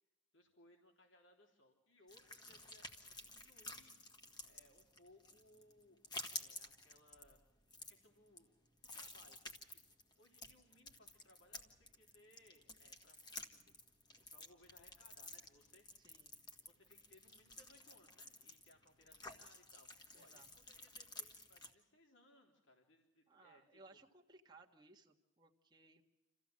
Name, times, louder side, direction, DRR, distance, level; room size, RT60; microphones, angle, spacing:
voice 1, 0.3-4.0 4.4-7.4 7.9-8.5 8.9-9.5 10.2-13.8 14.3-15.9 16.6-19.9 20.1-24.0, left 1 dB, 70° left, 2 dB, 3.7 m, -68 dB
sound 1, 2.1-21.7, left 2 dB, 20° left, 1.8 m, -53 dB
voice 2, 16.0-16.3 20.1-20.5 23.3-26.0, right 3 dB, 20° right, -1 dB, 1.6 m, -63 dB
28.5 x 15.5 x 7.6 m, 1.0 s
head